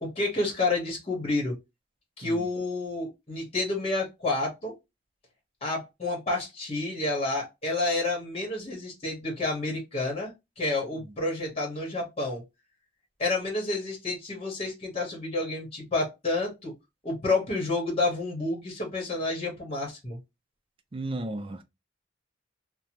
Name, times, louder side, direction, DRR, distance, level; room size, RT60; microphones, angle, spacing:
voice 1, 0.0-1.5 2.2-4.7 5.6-12.4 13.2-16.7 17.0-20.2, left 2 dB, 35° left, 1.1 m, -29 dB
voice 2, 20.9-21.6, right 2 dB, 30° right, 0.4 m, -34 dB
2.7 x 2.1 x 2.9 m
head